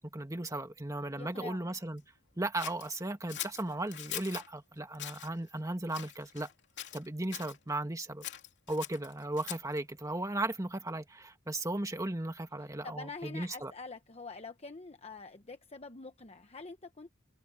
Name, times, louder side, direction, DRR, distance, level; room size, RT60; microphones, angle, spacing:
voice 1, 0.0-2.0 2.4-6.5 6.9-8.2 8.7-13.7, right 2 dB, 15° right, 1.7 m, -36 dB
voice 2, 1.1-1.8 12.6-17.1, left 3 dB, 30° left, 1.0 m, -46 dB
Scissors, 2.6-4.5 4.9-5.3 5.9-6.5 6.8-7.6 8.2-9.8, left 11 dB, 55° left, 3.2 m, -42 dB
open air
head